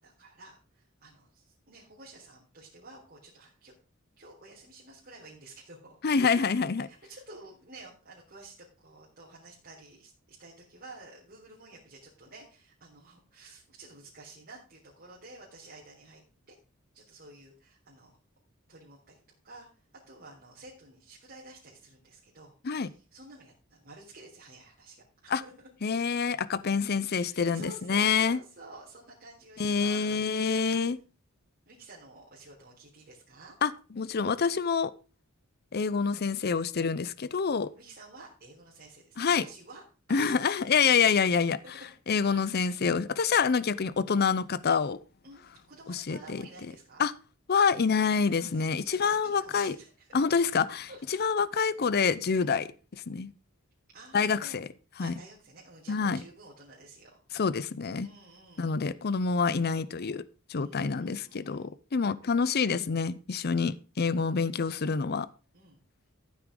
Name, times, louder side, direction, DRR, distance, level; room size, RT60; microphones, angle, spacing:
voice 1, 0.0-3.7 4.2-16.5 16.9-18.1 18.7-19.2 19.4-19.7 19.9-25.7 27.1-30.3 31.7-33.6 37.8-39.8 40.1-40.7 41.0-41.3 41.6-41.8 42.1-42.9 45.2-47.0 48.4-50.2 50.9-51.0 52.3-52.6 53.9-54.6 55.0-57.2 58.0-58.8 60.6-61.7 63.5-63.8 64.2-64.3 65.5-65.8, right 2 dB, 50° right, -5 dB, 3.9 m, -51 dB
voice 2, 6.0-6.9 22.6-22.9 25.3-25.4 25.8-28.4 29.6-31.0 33.6-34.9 35.7-37.7 39.2-39.5 40.1-41.6 42.1-45.0 45.9-46.4 47.0-47.1 47.5-49.8 50.1-50.9 51.2-52.7 52.9-53.3 54.1-54.7 55.0-55.1 55.9-56.2 57.3-58.1 58.6-60.2 60.5-65.3, left 5 dB, 50° left, 17 dB, 0.6 m, -27 dB
14.5 x 8.4 x 3.8 m, 0.33 s
head